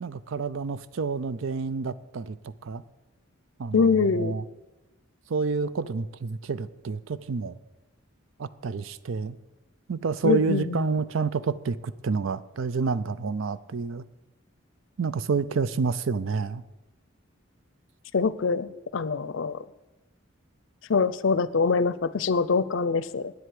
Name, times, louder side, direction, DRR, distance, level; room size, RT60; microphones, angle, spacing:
voice 1, 0.0-2.4 2.6-2.8 3.6-4.4 5.3-7.6 8.4-9.4 9.9-14.0 15.0-16.6, right 4 dB, 70° right, 16 dB, 0.5 m, -29 dB
voice 2, 3.7-4.4 10.2-10.9 18.1-19.6 20.9-23.3, left 5 dB, 65° left, 16 dB, 0.5 m, -24 dB
9.7 x 7.9 x 8.4 m, 1.0 s
head